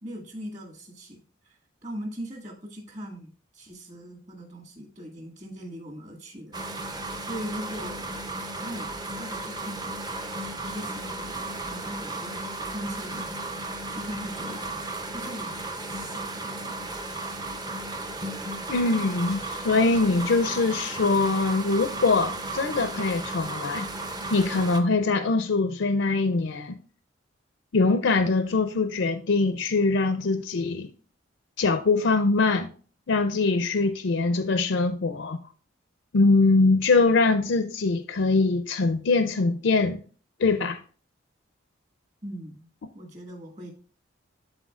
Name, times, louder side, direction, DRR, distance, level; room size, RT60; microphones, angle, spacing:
voice 1, 0.0-1.2 1.5-1.6 1.8-6.6 7.2-8.1 8.6-8.9 9.2-10.1 10.7-12.4 12.7-13.3 13.9-14.8 15.1-16.7 42.2-42.7 42.9-43.7, equal, 35° right, 1.8 m, -39 dB
sound 1, 6.5-24.8, right 2 dB, 20° right, 0.6 m, -34 dB
voice 2, 18.7-23.9 24.3-26.8 27.7-30.9 31.6-32.7 33.1-35.4 36.1-40.0 40.4-40.8, left 3 dB, 70° left, 0.5 m, -23 dB
11.5 x 4.1 x 2.4 m
head